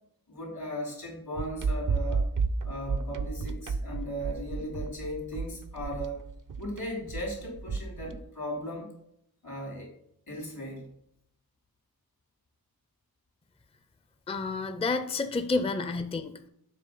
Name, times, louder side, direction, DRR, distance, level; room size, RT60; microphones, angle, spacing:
voice 1, 0.3-2.3 2.6-6.2 6.6-8.9 9.4-9.9 10.3-10.8, equal, 80° left, -2 dB, 3.0 m, -37 dB
sound 1, 1.4-8.2, right 4 dB, 60° right, 0.5 m, -32 dB
voice 2, 14.3-16.5, left 3 dB, 15° left, 10 dB, 0.4 m, -30 dB
7.5 x 3.4 x 5.5 m, 0.73 s
wide cardioid pair, 80°, 37 cm